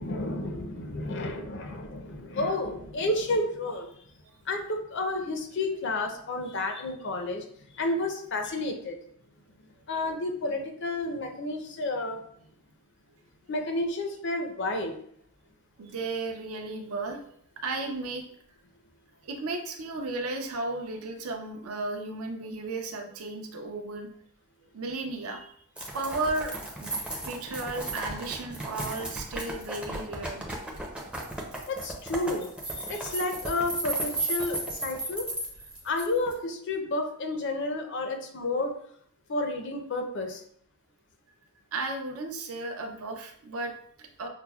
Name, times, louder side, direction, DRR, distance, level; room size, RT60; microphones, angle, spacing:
voice 1, 0.0-4.0 4.5-7.5 7.7-9.0 9.6-12.2 13.5-15.0 31.7-32.5 32.8-35.2 35.8-38.7 39.3-40.4, left 2 dB, 55° left, 5 dB, 0.5 m, -31 dB
voice 2, 15.8-18.2 19.2-24.1 24.7-25.5 25.9-27.0 27.2-30.6 41.7-44.3, right 3 dB, 75° right, 4 dB, 0.5 m, -34 dB
sound 1, 25.8-36.3, right 2 dB, 5° right, 0.5 m, -35 dB
5.7 x 2.0 x 2.3 m, 0.65 s
head